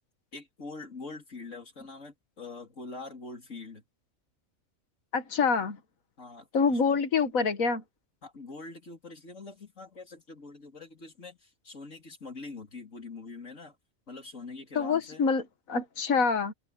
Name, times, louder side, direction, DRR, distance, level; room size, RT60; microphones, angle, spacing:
voice 1, 0.3-3.8 6.2-7.0 8.2-13.8 14.1-15.3, left 3 dB, 65° left, 3.8 m, -44 dB
voice 2, 5.1-5.8 6.5-7.8 14.8-16.5, left 5 dB, 90° left, 1.9 m, -26 dB
omnidirectional pair, 1.4 m